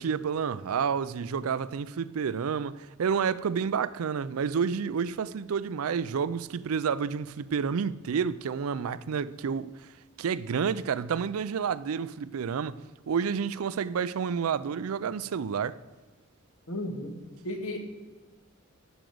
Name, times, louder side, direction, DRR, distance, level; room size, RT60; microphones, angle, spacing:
voice 1, 0.0-9.7 10.2-15.8, right 6 dB, 90° right, 0.4 m, -30 dB
voice 2, 16.7-17.2 17.4-17.8, left 1 dB, 90° left, 1.8 m, -33 dB
12.5 x 5.2 x 7.7 m
head